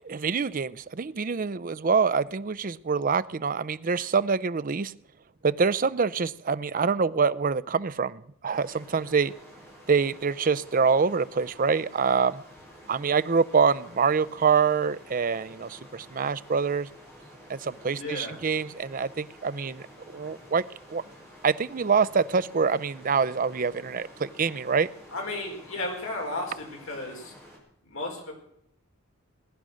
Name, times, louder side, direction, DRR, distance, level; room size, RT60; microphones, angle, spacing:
voice 1, 0.0-4.9 5.4-9.3 9.9-12.4 12.9-16.9 17.5-19.8 20.1-20.6 20.9-21.0 21.4-24.9, right 5 dB, 40° right, 15 dB, 0.5 m, -25 dB
sound 1, 8.5-27.6, equal, 10° left, 6.2 m, -50 dB
voice 2, 18.0-18.4 25.1-27.3 27.8-28.3, left 2 dB, 65° left, 0 dB, 5.1 m, -34 dB
20.0 x 10.5 x 6.4 m, 0.71 s
head